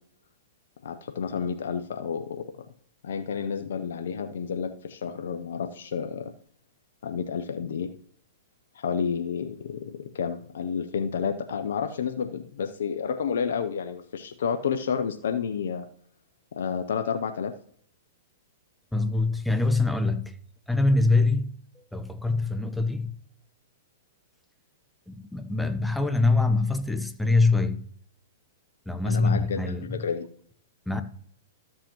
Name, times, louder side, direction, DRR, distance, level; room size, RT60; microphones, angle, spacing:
voice 1, 0.8-2.5 3.0-6.3 7.0-7.9 8.7-15.9 16.5-17.5 29.0-30.3, left 7 dB, 70° left, 0.7 m, -30 dB
voice 2, 18.9-20.3 20.7-21.5 21.9-23.1 25.1-27.8 28.9-30.0 30.9-31.0, left 3 dB, 5° left, 0.8 m, -24 dB
13.0 x 7.7 x 3.0 m
hypercardioid pair, 120°, 0 cm